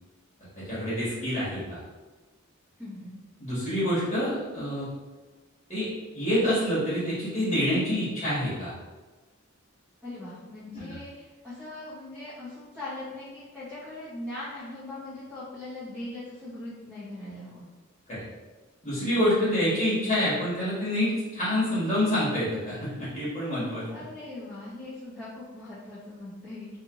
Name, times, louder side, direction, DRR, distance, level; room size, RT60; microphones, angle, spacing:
voice 1, 0.6-1.8 3.4-4.9 5.7-5.9 6.1-8.7 10.7-11.0 18.1-18.2 18.8-23.8, equal, 30° left, -11 dB, 1.2 m, -27 dB
voice 2, 2.8-3.1 10.0-17.6 23.9-26.7, left 2 dB, 5° right, -13 dB, 0.9 m, -40 dB
2.8 x 2.5 x 2.9 m, 1.3 s
head